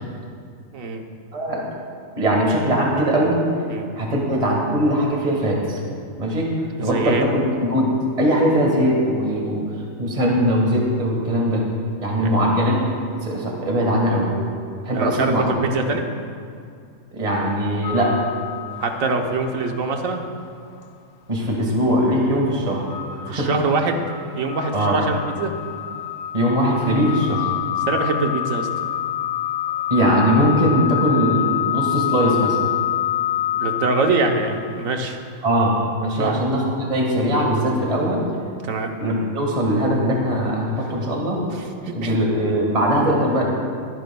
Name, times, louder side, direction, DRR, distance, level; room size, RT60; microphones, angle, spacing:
voice 1, 0.7-1.0 3.7-3.9 6.8-7.3 12.2-12.3 14.9-16.0 18.8-20.2 23.3-24.0 24.4-25.5 27.8-28.7 33.5-35.2 36.2-36.4 38.6-38.9 41.5-42.1, right 3 dB, 75° right, 4 dB, 1.3 m, -24 dB
voice 2, 1.3-1.6 2.2-3.4 4.0-5.8 6.2-6.5 6.8-7.9 8.2-11.6 12.0-12.8 13.2-14.3 14.8-15.4 17.1-18.2 21.3-22.8 23.1-23.5 23.8-23.9 24.7-25.0 26.3-27.5 29.9-32.6 35.4-38.2 39.0-41.4 41.9-43.4, equal, 25° right, -2 dB, 1.8 m, -20 dB
sound 1, 17.8-19.7 20.1-20.2 22.9-34.8, left 12 dB, 55° left, 0.7 m, -27 dB
22.5 x 9.3 x 2.3 m, 2.3 s
omnidirectional pair, 1.5 m